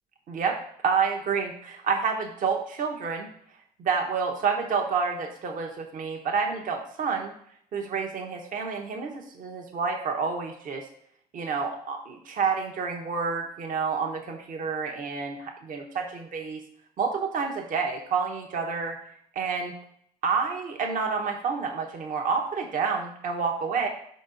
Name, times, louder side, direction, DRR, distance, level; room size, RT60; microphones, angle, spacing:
voice 1, 0.8-3.3 3.8-7.3 7.7-10.8 11.3-16.6 17.0-19.0 19.3-19.7 20.2-23.9, right 5 dB, 50° right, 2 dB, 1.0 m, -29 dB
5.5 x 5.2 x 3.9 m, 0.66 s
cardioid pair, 110°, 17 cm